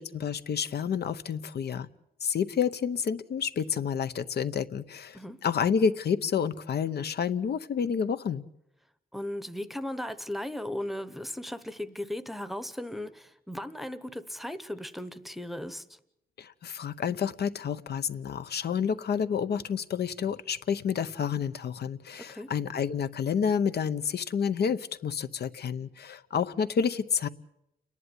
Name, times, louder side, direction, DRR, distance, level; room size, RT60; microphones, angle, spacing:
voice 1, 0.0-1.9 2.2-8.4 16.4-27.3, left 7 dB, 70° left, 0.8 m, -29 dB
voice 2, 9.1-16.0 22.2-22.5, left 1 dB, ahead, 0.9 m, -37 dB
29.5 x 11.0 x 9.5 m
wide cardioid pair, 165°, 18 cm